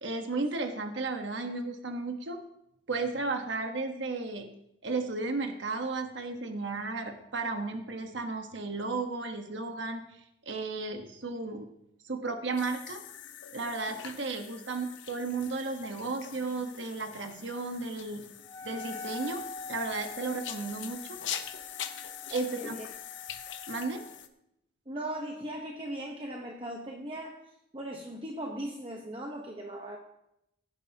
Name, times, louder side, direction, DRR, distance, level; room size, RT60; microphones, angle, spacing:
voice 1, 0.0-2.4 2.9-4.5 4.8-10.0 10.4-11.7 12.0-13.0 13.5-18.2 18.6-19.4 19.7-21.2 22.3-22.7 23.7-24.0, right 3 dB, 80° right, 5 dB, 1.2 m, -34 dB
sound 1, 12.5-24.3, left 9 dB, 85° left, 0.8 m, -43 dB
Wind instrument woodwind instrument, 18.4-24.2, left 3 dB, 20° left, 0.9 m, -45 dB
voice 2, 22.3-22.9 24.9-27.4 27.7-30.0, right 1 dB, 30° right, 0 dB, 1.1 m, -38 dB
16.0 x 11.0 x 2.9 m, 0.81 s
head